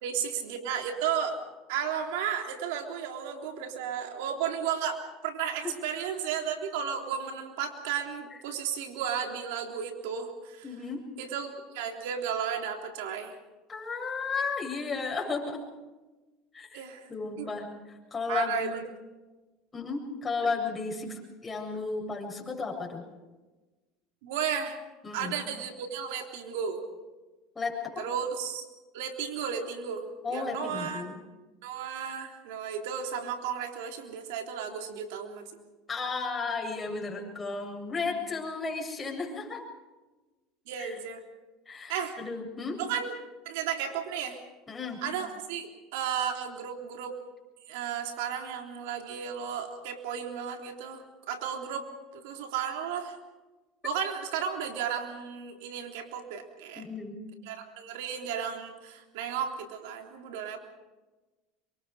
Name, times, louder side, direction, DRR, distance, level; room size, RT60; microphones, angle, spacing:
voice 1, 0.0-1.4 1.7-10.7 11.2-13.4 16.7-17.1 17.4-17.5 18.3-18.8 24.2-24.8 25.1-26.8 28.0-28.7 28.9-31.0 31.6-35.5 40.7-41.2 41.9-42.1 42.8-43.1 43.5-44.4 45.0-47.2 47.6-51.9 52.1-53.2 53.8-56.9 57.5-60.6, right 8 dB, 80° right, 4 dB, 3.5 m, -34 dB
voice 2, 10.6-11.1 13.7-15.6 16.5-16.8 17.1-18.7 19.7-23.0 25.0-25.3 27.5-28.0 30.2-31.2 35.9-39.6 40.8-41.0 41.7-42.8 44.7-45.0 56.8-57.2, left 4 dB, 20° left, 0 dB, 7.8 m, -34 dB
26.5 x 24.0 x 5.0 m, 1.2 s
supercardioid pair, 105°, 0 cm